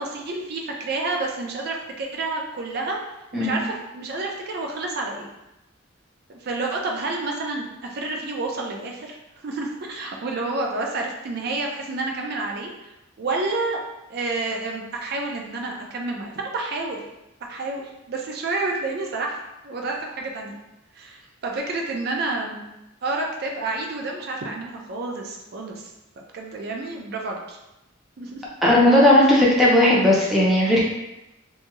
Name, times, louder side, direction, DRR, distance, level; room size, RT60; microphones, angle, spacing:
voice 1, 0.0-3.0 3.3-5.3 6.4-9.2 9.4-12.7 13.2-13.8 14.1-17.0 17.4-19.4 19.6-20.6 21.0-22.6 23.0-25.9 26.2-27.6 28.2-28.4, right 3 dB, 50° right, 1 dB, 0.4 m, -29 dB
voice 2, 28.6-30.8, left 1 dB, ahead, -6 dB, 0.5 m, -16 dB
2.6 x 2.3 x 3.0 m, 0.93 s
head